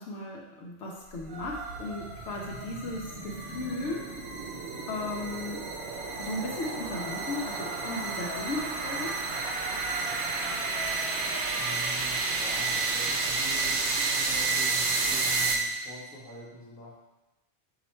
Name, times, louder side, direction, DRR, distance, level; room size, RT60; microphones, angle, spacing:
voice 1, 0.0-4.0 4.9-5.6 6.2-9.1, left 2 dB, 90° left, -2 dB, 1.0 m, -36 dB
sound 1, 1.2-16.0, right 3 dB, 75° right, 0.9 m, -31 dB
sound 2, 1.3-11.9, right 1 dB, 55° right, 1.1 m, -43 dB
voice 2, 11.6-17.0, left 1 dB, 55° left, -7 dB, 1.2 m, -44 dB
4.1 x 2.8 x 4.3 m, 1.0 s
omnidirectional pair, 1.2 m